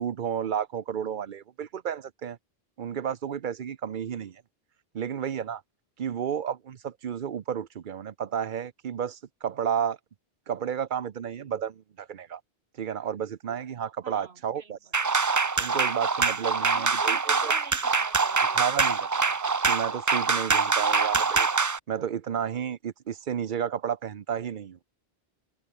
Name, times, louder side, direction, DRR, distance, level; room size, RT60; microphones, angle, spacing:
voice 1, 0.0-2.4 2.8-4.4 4.9-5.6 6.0-10.0 10.5-12.4 12.8-14.8 15.6-17.5 18.5-21.5 21.9-24.8, right 8 dB, 55° right, 0.8 m, -32 dB
voice 2, 14.0-14.8 16.7-18.7, right 5 dB, 75° right, 1.7 m, -45 dB
sound 1, 14.9-21.8, right 4 dB, 30° right, 0.3 m, -24 dB
omnidirectional pair, 1.1 m